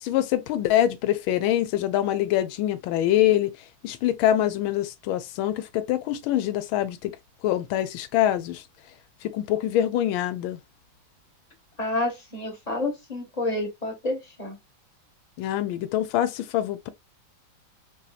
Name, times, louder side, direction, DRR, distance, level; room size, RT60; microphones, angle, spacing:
voice 1, 0.0-3.5 3.8-7.1 7.4-8.6 9.2-10.6 15.4-16.9, left 12 dB, 85° left, 1.4 m, -24 dB
voice 2, 11.8-14.6, left 2 dB, 25° left, 1.3 m, -29 dB
4.6 x 2.7 x 2.3 m
omnidirectional pair, 2.2 m